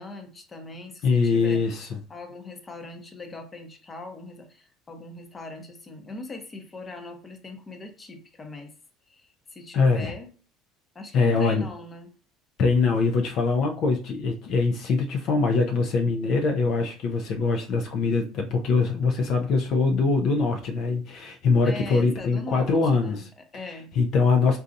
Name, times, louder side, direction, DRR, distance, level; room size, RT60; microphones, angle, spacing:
voice 1, 0.0-1.6 2.1-8.7 9.1-10.3 10.9-12.1 21.6-23.2 23.5-23.9, left 2 dB, 25° left, 5 dB, 0.7 m, -40 dB
voice 2, 1.0-2.0 9.7-10.1 11.1-11.7 12.6-24.6, left 4 dB, 55° left, 3 dB, 0.5 m, -23 dB
3.9 x 2.3 x 2.6 m, 0.37 s
supercardioid pair, 110°, 0 cm